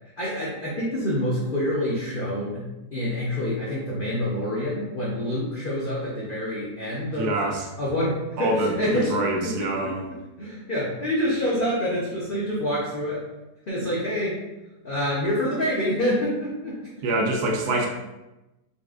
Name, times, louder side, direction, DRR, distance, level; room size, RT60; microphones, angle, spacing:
voice 1, 0.2-7.4 7.8-9.1 9.4-9.9 10.4-13.2 13.7-14.4 14.8-16.8 17.2-17.3 17.7-17.8, left 1 dB, 80° left, -7 dB, 0.4 m, -27 dB
voice 2, 7.1-7.7 8.4-8.7 9.1-10.0 17.0-17.9, right 2 dB, 75° right, 0 dB, 1.1 m, -25 dB
4.2 x 2.4 x 2.4 m, 1.0 s
omnidirectional pair, 1.9 m